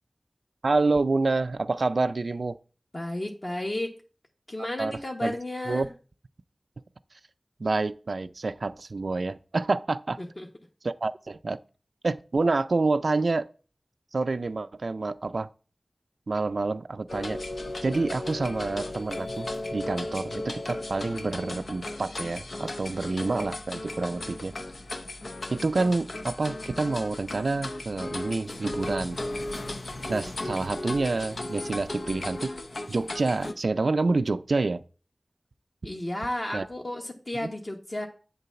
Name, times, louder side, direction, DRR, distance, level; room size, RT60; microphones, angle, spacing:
voice 1, 0.6-2.6 4.8-5.4 5.7-5.9 7.6-10.2 10.8-11.6 12.0-13.5 14.1-15.5 16.3-17.4 17.8-24.6 25.5-29.2 30.1-32.5 32.9-34.8 36.5-36.7, right 3 dB, 80° right, 0.4 m, -28 dB
voice 2, 2.9-3.9 4.5-5.9 10.2-10.5 35.8-38.1, left 1 dB, 45° left, 1.1 m, -33 dB
sound 1, 17.1-33.5, left 2 dB, 85° left, 0.7 m, -36 dB
8.3 x 3.9 x 6.8 m
wide cardioid pair, 65°, 0 cm